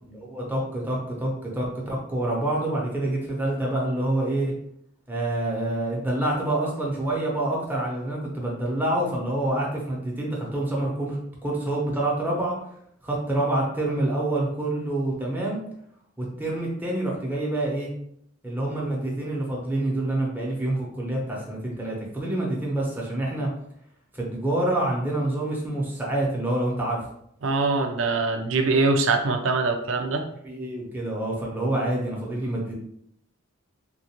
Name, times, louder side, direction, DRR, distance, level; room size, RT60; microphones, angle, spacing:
voice 1, 0.0-4.5 5.1-12.6 13.0-15.6 16.2-17.9 18.4-23.5 24.1-27.1 30.4-32.7, right 1 dB, 10° right, -4 dB, 0.8 m, -27 dB
voice 2, 27.4-30.2, right 3 dB, 65° right, 5 dB, 0.5 m, -23 dB
3.7 x 2.5 x 2.9 m, 0.72 s
head